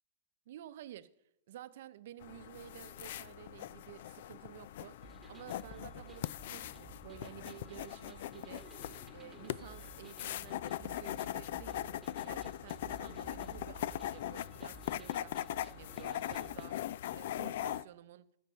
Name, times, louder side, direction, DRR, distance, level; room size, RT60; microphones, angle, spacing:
voice 1, 0.5-1.1 1.5-8.7 9.1-11.9 12.2-16.8 17.1-18.3, right 12 dB, 65° right, 0.7 m, -52 dB
sound 1, 2.2-17.8, left 12 dB, 65° left, 0.3 m, -41 dB
sound 2, 5.0-16.6, right 5 dB, 5° right, 1.7 m, -56 dB
15.0 x 6.5 x 5.7 m
hypercardioid pair, 130°, 0 cm